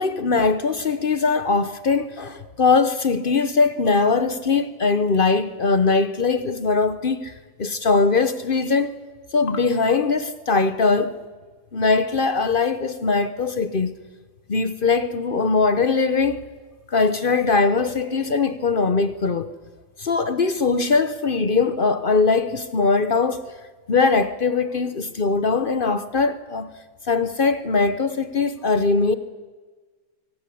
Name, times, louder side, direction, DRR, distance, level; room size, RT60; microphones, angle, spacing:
voice 1, 0.0-7.3 7.6-9.0 9.3-11.2 11.7-13.9 14.5-16.4 16.9-19.5 20.0-23.4 23.9-26.7 27.1-29.1, left 4 dB, 55° left, 0.5 m, -21 dB
24.0 x 18.0 x 8.5 m
omnidirectional pair, 2.2 m